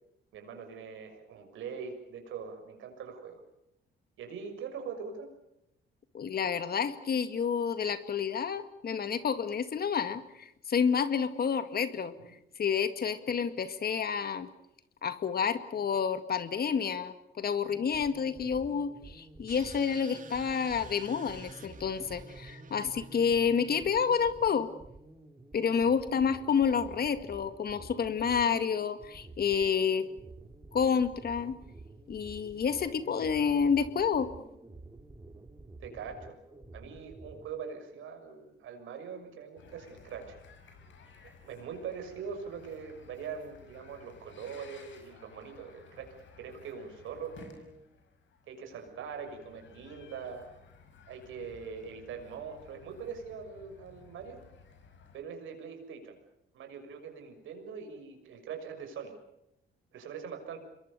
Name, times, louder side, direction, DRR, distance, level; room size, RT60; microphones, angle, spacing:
voice 1, 0.3-3.4 4.2-5.3 35.8-36.4 36.7-40.4 41.4-47.7 48.5-50.6 51.1-54.4 55.1-56.2 56.5-59.2 59.9-60.6, right 6 dB, 80° right, 5 dB, 6.5 m, -42 dB
voice 2, 6.1-12.1 12.6-14.5 15.0-24.7 25.5-30.1 30.7-31.5 32.1-34.3, left 6 dB, 50° left, 11 dB, 2.0 m, -29 dB
sound 1, 17.7-37.5, right 2 dB, 15° right, 3.4 m, -51 dB
sound 2, 19.5-24.2, right 4 dB, 40° right, 2.7 m, -51 dB
sound 3, 39.6-55.2, left 5 dB, 70° left, 5.8 m, -56 dB
27.5 x 22.5 x 6.9 m, 0.82 s
cardioid pair, 90°, 20 cm